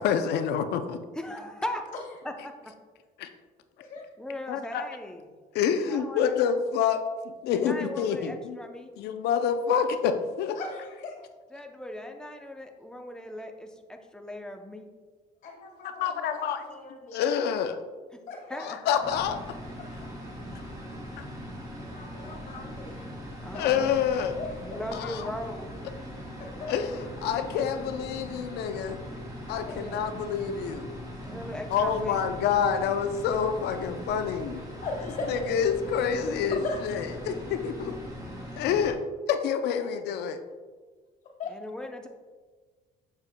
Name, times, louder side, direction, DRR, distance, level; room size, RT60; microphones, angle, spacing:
voice 1, 0.0-1.0 3.2-3.3 4.5-4.8 5.5-7.0 7.2-8.6 9.0-10.6 16.0-16.6 17.1-17.8 18.6-19.4 21.2-21.3 23.5-24.4 24.9-25.3 26.7-29.0 29.5-30.9 31.7-34.6 35.3-37.9 38.6-39.0 39.3-40.4, left 7 dB, 75° left, 8 dB, 0.5 m, -27 dB
voice 2, 1.1-1.8 2.2-2.7 4.2-5.3 5.9-6.3 7.5-8.9 11.5-14.9 18.1-18.2 18.5-18.8 23.4-23.9 24.6-25.8 29.8-30.0 31.3-32.2 41.5-42.1, left 1 dB, 5° left, 4 dB, 0.6 m, -38 dB
voice 3, 10.5-11.2 15.4-17.2 18.3-18.6 19.8-20.1 21.8-23.1 24.4-24.8 26.4-26.7 29.7-29.8 31.1-31.3 34.8-35.5 36.5-36.8 41.4-41.5, left 3 dB, 50° left, -2 dB, 1.8 m, -38 dB
sound 1, 19.0-38.9, equal, 20° right, 1.9 m, -40 dB
6.9 x 6.8 x 2.2 m, 1.4 s
cardioid pair, 110°, 17 cm